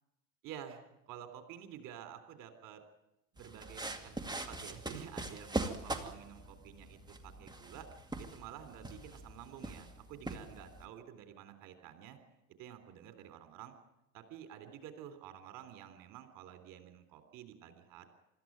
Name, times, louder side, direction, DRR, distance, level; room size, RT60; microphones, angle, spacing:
voice 1, 0.4-2.8 3.3-7.9 8.2-12.2 12.6-13.7 14.1-18.1, right 10 dB, 50° right, 8 dB, 3.6 m, -50 dB
sound 1, 3.4-10.9, right 2 dB, 10° right, 2.2 m, -42 dB
25.5 x 13.5 x 9.2 m, 0.90 s
figure-of-eight pair, 70°, 42 cm